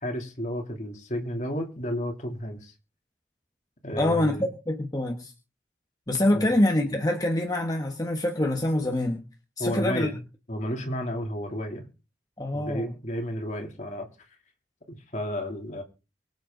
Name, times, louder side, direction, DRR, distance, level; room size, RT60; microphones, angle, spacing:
voice 1, 0.0-2.7 3.8-4.5 6.3-6.5 9.6-10.2 10.5-11.8 12.5-14.1 14.9-15.8, equal, 45° left, 2.9 m, -32 dB
voice 2, 4.0-5.3 6.1-9.2 9.6-10.1 12.4-12.9, left 1 dB, 20° left, 1.4 m, -25 dB
24.0 x 8.0 x 3.9 m
head